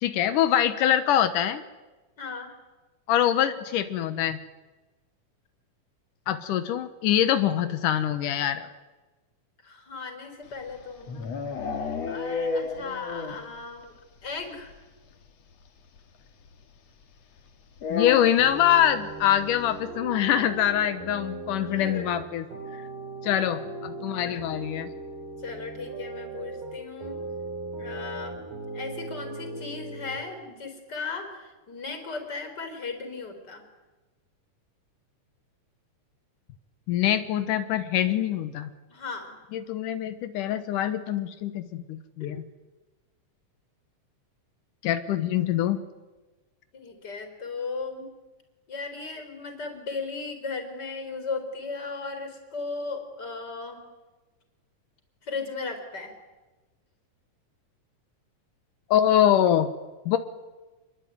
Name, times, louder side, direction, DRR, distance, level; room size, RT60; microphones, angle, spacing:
voice 1, 0.0-1.6 3.1-4.4 6.3-8.7 17.9-22.4 22.7-22.8 23.2-24.9 36.9-38.7 39.5-42.4 44.8-45.8 58.9-59.7 60.1-60.2, left 11 dB, 85° left, 10 dB, 2.7 m, -24 dB
voice 2, 2.2-2.5 9.6-11.3 12.1-13.9 14.2-14.7 21.6-22.1 25.4-27.2 27.7-28.4 28.7-33.6 38.9-39.3 42.2-42.3 46.7-48.1 48.7-53.8 55.2-56.1, left 4 dB, 30° left, 6 dB, 4.9 m, -36 dB
sound 1, 10.5-13.6 13.8-13.9 14.2-14.3 14.6-14.7 16.0-16.1 17.8-18.6, left 4 dB, 55° left, 3.0 m, -31 dB
sound 2, 18.4-30.2, right 3 dB, 85° right, 7.4 m, -38 dB
27.5 x 22.0 x 9.5 m, 1.2 s
omnidirectional pair, 3.6 m